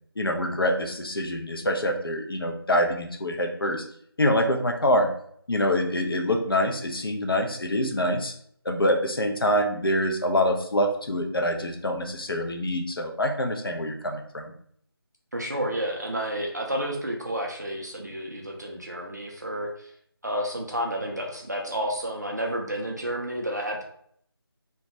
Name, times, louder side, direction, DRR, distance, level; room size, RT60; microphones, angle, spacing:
voice 1, 0.2-3.8 4.2-5.1 5.5-8.3 8.6-14.5, left 1 dB, 60° left, 3 dB, 0.5 m, -25 dB
voice 2, 15.3-19.9 20.2-23.8, equal, 45° right, 0 dB, 0.4 m, -30 dB
2.2 x 2.1 x 2.7 m, 0.65 s
figure-of-eight pair, 165°, 13 cm